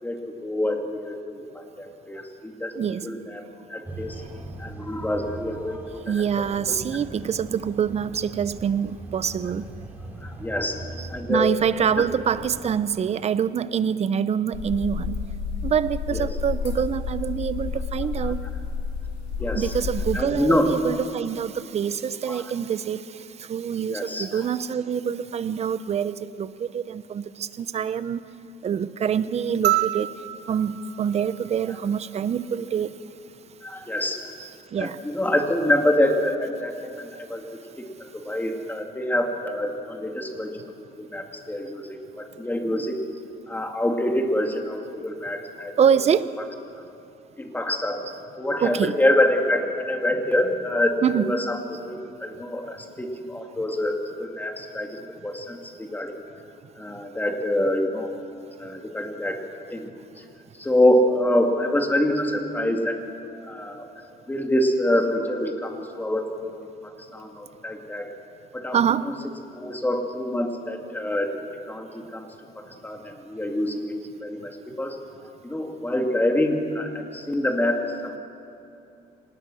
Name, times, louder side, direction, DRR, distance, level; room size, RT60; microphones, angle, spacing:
voice 1, 0.0-2.7 3.0-3.4 3.7-4.2 4.6-6.3 6.6-6.7 10.2-10.8 11.1-11.5 12.0-12.1 16.1-16.3 18.2-18.3 19.4-19.7 20.1-20.7 22.3-22.4 23.9-24.4 33.6-34.2 34.8-37.4 38.0-40.7 41.0-43.0 43.5-46.0 47.4-48.0 48.4-56.2 56.8-58.1 58.6-59.4 59.7-59.9 60.6-63.0 63.3-63.9 64.3-68.1 68.5-68.8 69.0-69.1 69.5-71.3 71.7-72.3 72.6-73.9 74.2-75.0 75.4-78.2, left 1 dB, 10° left, 3 dB, 2.4 m, -26 dB
voice 2, 2.8-3.1 6.1-9.6 11.0-15.2 15.6-18.4 19.5-28.2 28.6-30.1 30.5-32.9 34.4-35.0 45.8-46.3 48.1-48.2 48.6-49.0 51.0-51.4 68.7-69.1, right 8 dB, 40° right, 15 dB, 0.8 m, -25 dB
sound 1, 3.8-12.8, right 2 dB, 10° right, 3.2 m, -40 dB
sound 2, 14.5-20.2, left 5 dB, 85° left, 3.6 m, -30 dB
sound 3, 29.6-32.2 33.8-33.9, right 16 dB, 75° right, 0.6 m, -29 dB
25.5 x 19.5 x 6.3 m, 2.8 s
cardioid pair, 110°, 17 cm